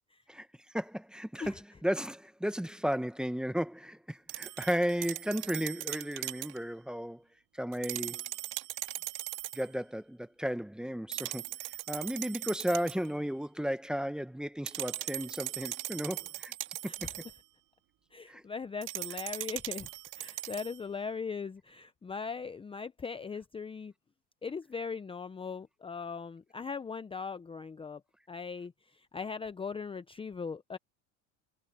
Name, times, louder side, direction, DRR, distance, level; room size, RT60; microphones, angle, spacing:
voice 1, 0.7-7.2 7.5-8.2 9.5-11.5 11.9-16.5 16.8-17.1 18.3-18.4, equal, ahead, 1.0 m, -34 dB
sound 1, 4.3-6.6 7.7-9.7 11.1-13.1 14.7-17.4 18.8-20.8, right 18 dB, 60° right, 2.2 m, -39 dB
voice 2, 18.1-19.9 20.1-23.9 24.4-28.0 28.3-28.7 29.1-30.8, left 5 dB, 15° left, 0.7 m, -39 dB
supercardioid pair, 115°, 35 cm